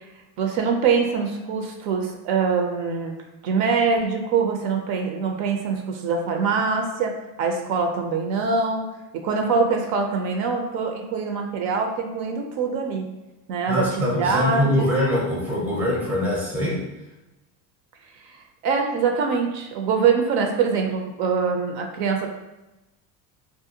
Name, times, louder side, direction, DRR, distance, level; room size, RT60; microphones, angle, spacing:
voice 1, 0.4-3.1 3.4-8.8 9.1-13.1 13.5-14.9 18.6-22.3, right 5 dB, 65° right, 3 dB, 0.5 m, -24 dB
voice 2, 13.7-16.8, left 1 dB, 5° right, -4 dB, 0.5 m, -23 dB
2.5 x 2.1 x 2.7 m, 1.0 s
supercardioid pair, 130°, 44 cm